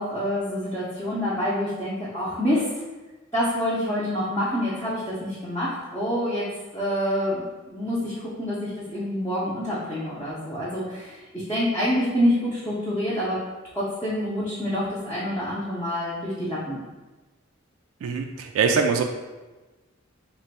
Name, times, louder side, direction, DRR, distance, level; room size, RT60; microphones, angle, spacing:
voice 1, 0.0-2.7 3.3-6.5 6.7-13.4 13.7-16.8, equal, 15° left, -10 dB, 0.6 m, -27 dB
voice 2, 18.0-19.0, right 5 dB, 90° right, 4 dB, 0.3 m, -23 dB
3.2 x 2.2 x 4.0 m, 1.2 s
head